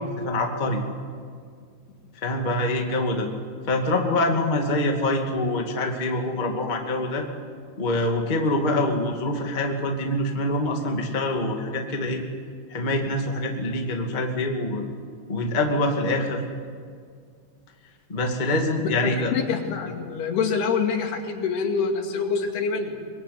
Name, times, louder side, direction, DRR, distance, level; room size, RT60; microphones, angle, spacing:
voice 1, 0.2-0.8 2.2-3.3 3.7-7.3 7.8-12.2 12.7-14.8 15.3-16.4 18.1-19.3, left 1 dB, 20° left, 2 dB, 1.4 m, -25 dB
voice 2, 19.0-23.0, left 5 dB, 75° left, 3 dB, 4.2 m, -26 dB
24.0 x 21.0 x 9.5 m, 2.1 s
omnidirectional pair, 4.7 m